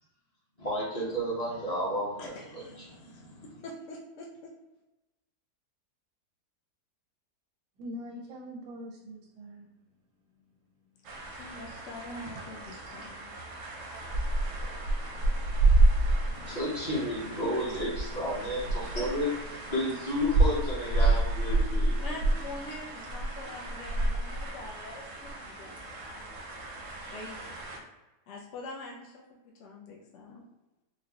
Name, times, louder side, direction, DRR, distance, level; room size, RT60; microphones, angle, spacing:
voice 1, 0.6-3.6 16.2-22.1 23.4-23.5, equal, 35° left, -7 dB, 0.7 m, -32 dB
voice 2, 2.2-4.5 11.4-13.3 17.7-17.8 22.0-26.4 27.0-27.8 28.3-30.4, left 2 dB, 75° left, -2 dB, 0.6 m, -45 dB
voice 3, 7.8-9.7 12.2-12.7 13.9-14.0 14.5-14.7, equal, 90° right, -3 dB, 1.3 m, -44 dB
sound 1, 11.0-27.8, right 2 dB, 65° right, 0.8 m, -29 dB
3.8 x 2.1 x 2.8 m, 1.0 s
omnidirectional pair, 1.7 m